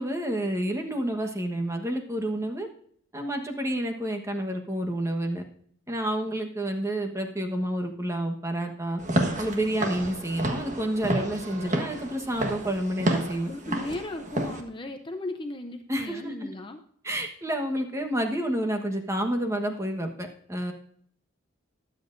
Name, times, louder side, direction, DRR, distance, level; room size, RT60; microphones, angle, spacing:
voice 1, 0.0-2.7 3.1-5.4 5.9-9.0 9.4-13.5 15.9-16.3 17.0-20.7, right 1 dB, 15° right, 4 dB, 1.2 m, -29 dB
Walk footsteps / Siren, 9.0-14.6, right 1 dB, 40° right, 1.3 m, -30 dB
voice 2, 13.5-16.8, left 2 dB, 25° left, 6 dB, 0.6 m, -36 dB
21.5 x 7.7 x 2.6 m, 0.62 s
head